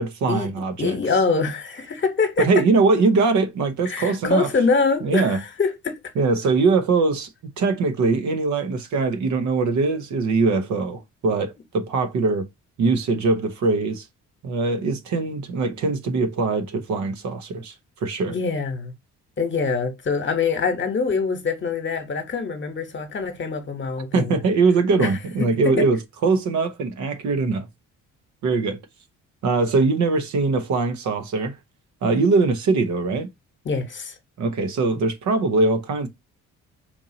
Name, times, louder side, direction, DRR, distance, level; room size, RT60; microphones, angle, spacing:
voice 1, 0.0-1.0 2.4-4.5 5.0-5.4 6.2-7.3 7.6-12.5 12.8-14.1 14.4-17.7 18.0-18.3 24.1-27.7 28.4-28.8 29.4-31.5 32.0-33.3 34.4-36.1, right 3 dB, 70° right, 0.9 m, -22 dB
voice 2, 0.8-2.5 3.8-6.0 18.3-18.9 19.4-24.3 25.0-25.1 25.6-25.9 33.6-34.1, left 4 dB, 40° left, 1.1 m, -24 dB
4.5 x 2.7 x 2.7 m
cardioid pair, 90°, 30 cm